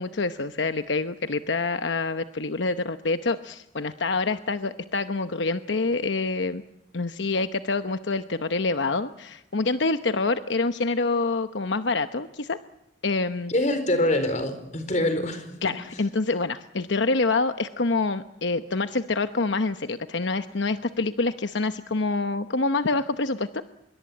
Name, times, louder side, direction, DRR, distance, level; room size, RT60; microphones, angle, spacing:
voice 1, 0.0-6.6 6.9-12.6 13.0-13.5 15.6-23.6, left 3 dB, 75° left, 10 dB, 0.9 m, -26 dB
voice 2, 13.5-15.7, left 1 dB, 40° left, 9 dB, 4.3 m, -25 dB
25.5 x 22.5 x 8.5 m, 0.85 s
head